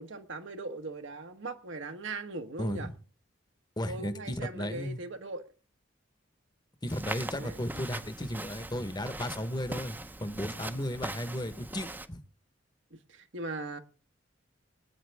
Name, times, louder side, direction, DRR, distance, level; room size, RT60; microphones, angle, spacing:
voice 1, 0.0-2.9 3.9-5.5 7.3-7.6 12.9-13.8, right 3 dB, 80° right, 1.2 m, -40 dB
voice 2, 2.6-2.9 3.8-5.0 6.8-12.2, equal, 20° left, 1.0 m, -35 dB
Walk footsteps, 6.9-12.1, right 2 dB, 10° right, 0.6 m, -41 dB
25.0 x 8.8 x 3.4 m
head